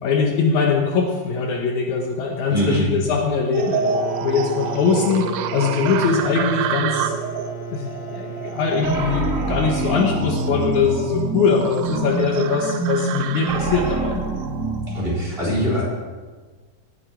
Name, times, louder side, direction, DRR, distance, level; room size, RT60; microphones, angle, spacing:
voice 1, 0.0-3.9 4.2-5.3 5.5-7.1 7.7-14.2, left 5 dB, 70° left, 1 dB, 2.4 m, -21 dB
voice 2, 2.5-2.8 14.9-15.8, equal, 15° right, -5 dB, 4.0 m, -22 dB
sound 1, 3.5-15.3, right 7 dB, 85° right, 1.5 m, -29 dB
sound 2, 3.6-12.0, right 4 dB, 35° left, 2.5 m, -35 dB
sound 3, 8.8-14.9, right 3 dB, 40° right, 1.2 m, -26 dB
18.0 x 8.8 x 4.5 m, 1.4 s
omnidirectional pair, 3.8 m